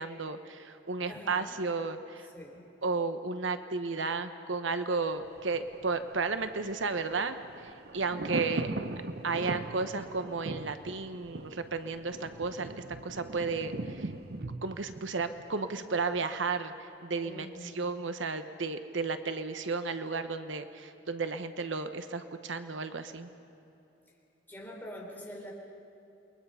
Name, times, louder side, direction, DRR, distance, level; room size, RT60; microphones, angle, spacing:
voice 1, 0.0-2.3 2.8-7.4 7.9-8.7 9.2-12.7 13.0-14.1 14.6-16.7 17.0-23.3, right 4 dB, 80° right, 9 dB, 1.0 m, -33 dB
voice 2, 1.1-1.5 2.3-2.7 17.2-17.9 24.5-25.5, left 1 dB, 10° left, -2 dB, 4.0 m, -44 dB
Thunder, 5.2-16.2 16.5-16.6, right 2 dB, 55° right, 0.8 m, -40 dB
29.0 x 22.0 x 5.7 m, 2.8 s
head